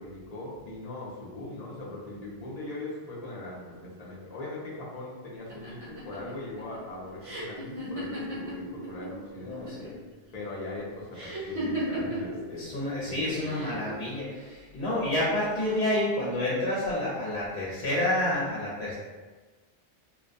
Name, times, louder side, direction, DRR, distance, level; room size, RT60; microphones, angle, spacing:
voice 1, 0.0-9.7 10.3-12.7 13.0-13.8, left 2 dB, 45° left, -5 dB, 0.6 m, -40 dB
sound 1, 5.5-9.1 9.4-10.0 11.1-12.4 13.3-13.9, right 1 dB, 35° right, 0.7 m, -35 dB
voice 2, 9.4-9.9 12.6-18.9, left 1 dB, 80° left, -7 dB, 0.9 m, -29 dB
2.2 x 2.2 x 2.6 m, 1.3 s
omnidirectional pair, 1.1 m